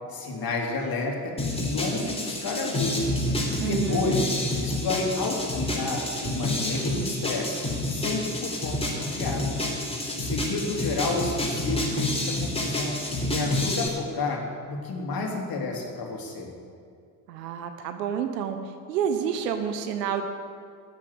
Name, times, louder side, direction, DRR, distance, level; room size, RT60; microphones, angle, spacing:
voice 1, 0.1-1.3 1.6-3.1 3.6-4.3 4.6-7.6 7.8-9.7 10.2-14.4 14.7-16.5, left 3 dB, 45° left, 1 dB, 3.1 m, -30 dB
sound 1, 1.4-13.9, left 1 dB, 10° left, 4.0 m, -29 dB
voice 2, 3.6-4.2 17.3-18.6 18.9-20.3, right 8 dB, 70° right, 7 dB, 1.1 m, -29 dB
13.5 x 10.0 x 8.1 m, 2.3 s
figure-of-eight pair, 55°, 50 cm